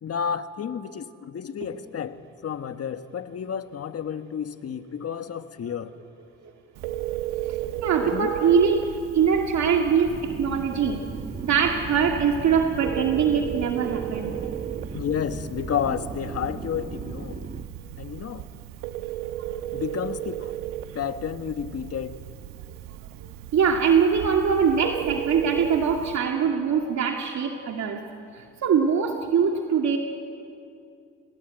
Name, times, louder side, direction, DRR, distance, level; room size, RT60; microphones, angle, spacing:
voice 1, 0.0-5.9 8.0-8.5 14.9-17.4 18.0-18.4 19.7-20.5 20.9-22.2, left 8 dB, 45° left, 10 dB, 1.5 m, -31 dB
Telephone, 6.7-26.2, right 12 dB, 85° right, 1.1 m, -35 dB
voice 2, 7.8-8.8 9.1-11.0 11.4-14.3 23.5-28.0 28.3-30.0, right 6 dB, 60° right, 2 dB, 2.3 m, -22 dB
sound 1, 10.1-17.6, right 4 dB, 25° right, 1.3 m, -37 dB
29.5 x 19.5 x 9.1 m, 2.5 s
supercardioid pair, 70°, 32 cm